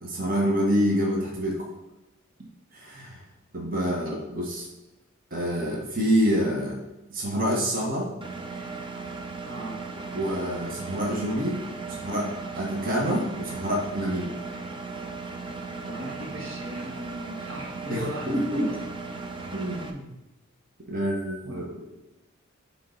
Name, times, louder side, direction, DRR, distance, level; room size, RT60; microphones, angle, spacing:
voice 1, 0.0-1.7 2.9-3.2 3.5-4.7 5.3-6.8 7.1-8.1 10.1-11.6 11.9-14.3 17.9-18.7 19.5-20.1 20.9-21.9, equal, 45° right, -3 dB, 1.4 m, -27 dB
Engine, 8.2-19.9, right 3 dB, 25° right, 0.6 m, -37 dB
voice 2, 9.5-9.8 15.8-18.9 21.4-21.7, right 1 dB, 70° right, -1 dB, 1.5 m, -37 dB
9.3 x 3.8 x 4.0 m, 1.0 s
head